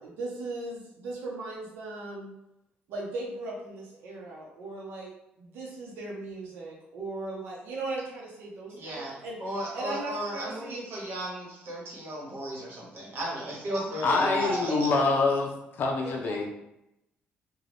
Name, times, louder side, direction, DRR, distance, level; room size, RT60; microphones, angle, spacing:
voice 1, 0.0-2.3 2.9-5.1 5.4-9.4 9.7-10.8 14.0-15.0 16.0-16.5, right 2 dB, 85° right, -4 dB, 0.7 m, -37 dB
voice 2, 8.7-9.1 9.4-14.9, right 1 dB, 65° right, -4 dB, 1.1 m, -35 dB
voice 3, 14.0-15.5 15.8-16.5, left 3 dB, 60° left, 1 dB, 0.4 m, -25 dB
2.4 x 2.2 x 3.3 m, 0.86 s
cardioid pair, 80°, 4 cm